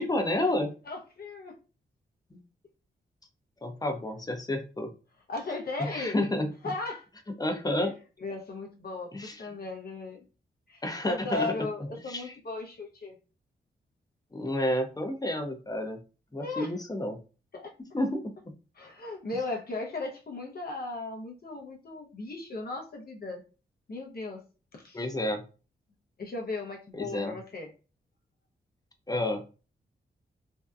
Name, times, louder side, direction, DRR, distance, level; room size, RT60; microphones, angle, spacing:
voice 1, 0.0-0.7 2.3-2.4 3.6-4.9 5.8-6.5 7.4-7.9 9.1-9.4 10.8-11.5 12.1-12.3 14.3-16.0 16.3-17.2 17.9-18.5 24.9-25.4 26.9-27.3 29.1-29.4, left 1 dB, 20° left, 6 dB, 0.7 m, -30 dB
voice 2, 0.9-1.5 5.3-6.2 6.6-7.1 8.2-10.2 10.7-13.2 16.3-16.7 17.5-17.7 18.8-23.4 23.9-24.4 24.7-25.1 26.2-27.7, left 3 dB, 50° left, 1 dB, 0.7 m, -36 dB
2.7 x 2.1 x 2.4 m, 0.35 s
supercardioid pair, 40°, 20 cm